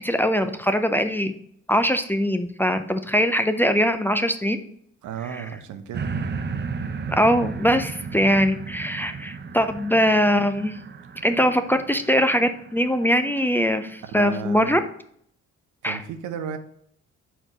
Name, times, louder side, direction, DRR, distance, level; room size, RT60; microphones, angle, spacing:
voice 1, 0.0-1.3 1.7-4.6 5.4-5.5 7.2-10.8 11.2-14.8 15.8-16.0, equal, 5° left, 8 dB, 0.4 m, -21 dB
voice 2, 5.0-6.1 14.1-14.8 15.8-16.6, right 7 dB, 80° right, 8 dB, 0.8 m, -34 dB
sound 1, 5.9-13.3 13.9-14.0, right 5 dB, 35° right, 0.6 m, -34 dB
4.5 x 4.5 x 4.9 m, 0.66 s
cardioid pair, 90°, 30 cm